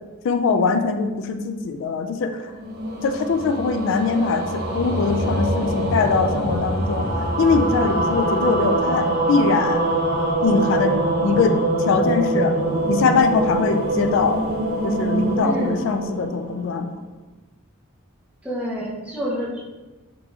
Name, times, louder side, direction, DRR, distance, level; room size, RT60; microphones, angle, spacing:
voice 1, 0.2-2.4 3.0-7.1 7.4-9.8 10.4-12.5 12.9-14.4 14.8-16.9, left 4 dB, 60° left, 7 dB, 0.3 m, -22 dB
sound 1, 2.5-16.9, right 1 dB, 45° right, 0.6 m, -24 dB
voice 2, 15.4-15.8 18.4-19.6, equal, 5° right, -5 dB, 0.6 m, -28 dB
3.8 x 2.8 x 2.4 m, 1.2 s
head